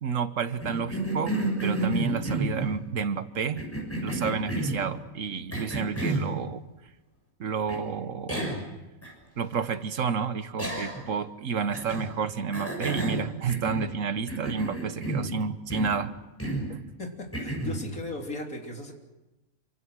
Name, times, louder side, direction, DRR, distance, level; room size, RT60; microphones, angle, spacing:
voice 1, 0.0-1.3 1.6-3.7 4.0-6.6 7.4-8.5 9.4-16.1 16.7-16.8, right 6 dB, 70° right, 11 dB, 1.5 m, -30 dB
Cough, 0.6-2.8 3.6-4.8 5.5-6.3 7.7-7.8 8.3-8.7 9.0-9.1 10.6-11.1 11.7-12.1 12.5-14.0 14.3-15.3 15.7-16.0 16.4-16.7 17.3-17.8, right 1 dB, 10° left, 6.5 m, -31 dB
voice 2, 17.0-18.9, left 1 dB, 80° left, 2 dB, 3.7 m, -37 dB
27.0 x 25.0 x 6.4 m, 1.0 s
omnidirectional pair, 1.5 m